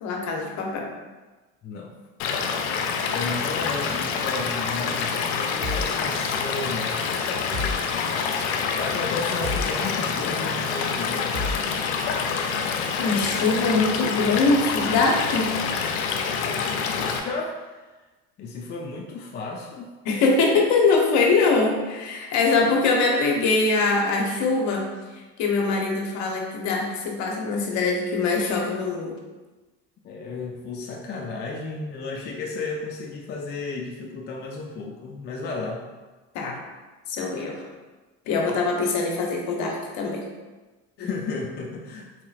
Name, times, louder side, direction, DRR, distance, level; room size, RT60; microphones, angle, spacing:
voice 1, 0.0-0.9 13.0-15.5 20.0-24.9 25.4-29.2 36.3-36.6 37.1-37.6 38.3-40.2 41.0-41.1, left 3 dB, 65° left, 1 dB, 0.8 m, -23 dB
voice 2, 1.6-1.9 3.1-7.3 8.8-11.4 16.4-17.8 18.4-19.9 30.0-35.9 41.0-42.1, left 3 dB, 35° left, 0 dB, 0.4 m, -33 dB
Stream / Liquid, 2.2-17.2, left 6 dB, 85° left, 0.5 m, -27 dB
sound 1, 5.6-6.5 6.8-12.8, left 2 dB, 65° right, 1.3 m, -36 dB
3.9 x 2.9 x 2.4 m, 1.2 s
supercardioid pair, 100°, 31 cm